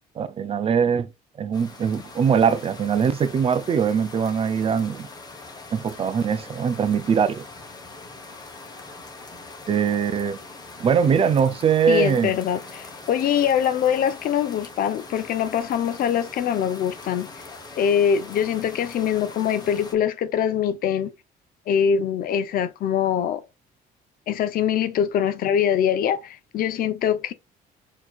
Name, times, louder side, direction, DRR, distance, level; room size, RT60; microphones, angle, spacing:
voice 1, 0.2-1.1 1.4-5.1 5.7-7.4 9.7-10.4 10.8-12.4, right 7 dB, 35° right, 0.4 m, -22 dB
sound 1, 1.5-20.0, left 3 dB, 25° left, 1.0 m, -42 dB
voice 2, 11.9-17.3 17.8-21.1 21.7-23.4 24.3-27.3, left 8 dB, 60° left, 0.6 m, -23 dB
4.4 x 2.9 x 2.3 m
cardioid pair, 110°, 17 cm